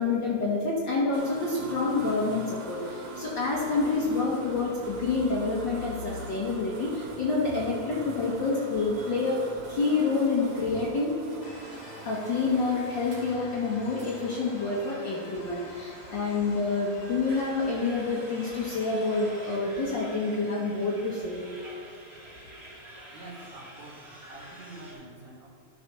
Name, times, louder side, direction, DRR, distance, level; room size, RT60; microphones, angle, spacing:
voice 1, 0.0-9.4 9.7-11.1 12.0-21.4, left 3 dB, 55° left, -4 dB, 1.4 m, -28 dB
sound 1, 1.1-16.7, right 4 dB, 75° right, 2.8 m, -43 dB
sound 2, 11.4-19.6, left 1 dB, 25° left, 1.0 m, -47 dB
sound 3, 17.3-24.9, right 1 dB, 30° right, 2.4 m, -48 dB
voice 2, 23.1-24.0 24.3-25.5, right 2 dB, 55° right, -3 dB, 2.2 m, -46 dB
11.5 x 5.0 x 6.1 m, 2.5 s
omnidirectional pair, 3.3 m